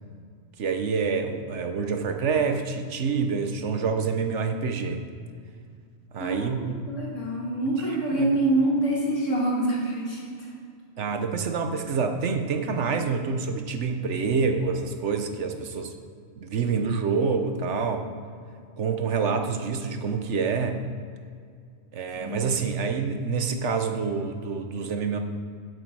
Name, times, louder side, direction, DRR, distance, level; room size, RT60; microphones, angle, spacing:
voice 1, 0.6-5.0 6.1-6.8 7.8-7.9 8.2-8.3 11.0-15.9 16.4-18.1 18.8-20.8 21.9-25.2, right 5 dB, 65° right, 6 dB, 1.1 m, -27 dB
voice 2, 6.2-10.5 22.2-22.4, right 1 dB, 70° left, -4 dB, 2.8 m, -26 dB
11.5 x 7.9 x 4.7 m, 2.2 s
omnidirectional pair, 1.3 m